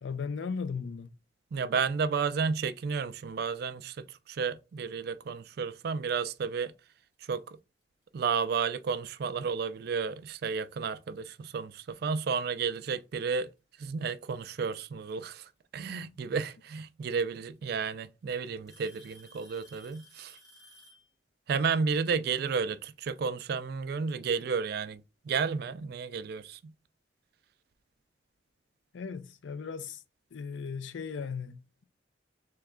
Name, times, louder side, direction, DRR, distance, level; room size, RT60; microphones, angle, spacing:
voice 1, 0.0-1.1 16.3-16.4 28.9-30.0 30.3-31.6, left 5 dB, 80° left, 0.4 m, -37 dB
voice 2, 1.5-6.7 7.3-7.6 8.1-13.5 13.8-20.4 21.5-26.7, right 5 dB, 55° right, 0.3 m, -32 dB
Alarm / Tick-tock, 7.1-7.4 8.3-8.4 9.1-9.2 10.9-11.0 12.2-12.3 13.6-14.0 15.8-15.9 17.1-17.2 17.6-18.0 18.7-21.1, equal, 20° left, 1.6 m, -56 dB
3.4 x 3.1 x 3.6 m
head